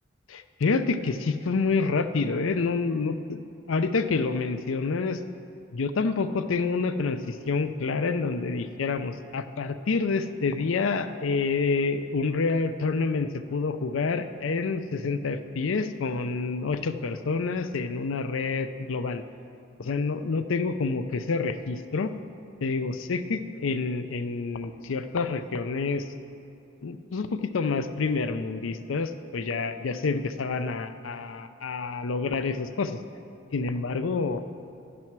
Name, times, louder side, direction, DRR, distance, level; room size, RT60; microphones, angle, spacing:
voice 1, 0.3-5.2 5.7-19.2 19.8-22.1 22.6-26.1 26.8-33.0 33.5-34.6, left 4 dB, 70° left, 11 dB, 0.5 m, -28 dB
11.0 x 7.6 x 6.0 m, 2.6 s
head